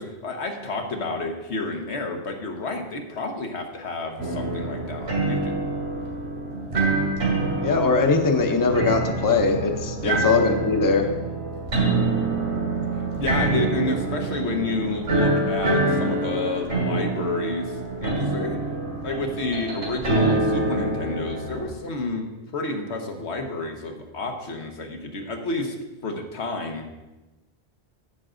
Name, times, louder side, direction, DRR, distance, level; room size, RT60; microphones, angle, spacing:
voice 1, 0.0-5.7 10.0-10.2 12.9-17.7 18.0-18.6 19.0-25.7 26.0-26.9, left 2 dB, 85° left, 3 dB, 1.4 m, -30 dB
sound 1, 4.2-21.7, right 2 dB, 75° right, 2.6 m, -26 dB
voice 2, 7.6-11.1, left 4 dB, 20° left, 5 dB, 0.6 m, -21 dB
9.9 x 7.9 x 3.8 m, 1.1 s
omnidirectional pair, 1.1 m